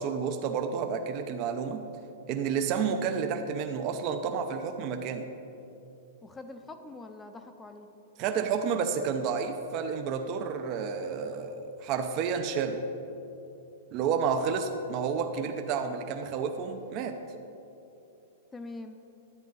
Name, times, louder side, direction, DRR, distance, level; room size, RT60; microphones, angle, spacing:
voice 1, 0.0-1.9 2.3-5.3 8.2-12.9 13.9-17.2, right 6 dB, 40° right, 6 dB, 0.6 m, -30 dB
voice 2, 6.2-7.9 18.5-19.0, left 2 dB, 10° left, 8 dB, 0.6 m, -44 dB
11.0 x 8.5 x 4.0 m, 2.8 s
hypercardioid pair, 140°, 0 cm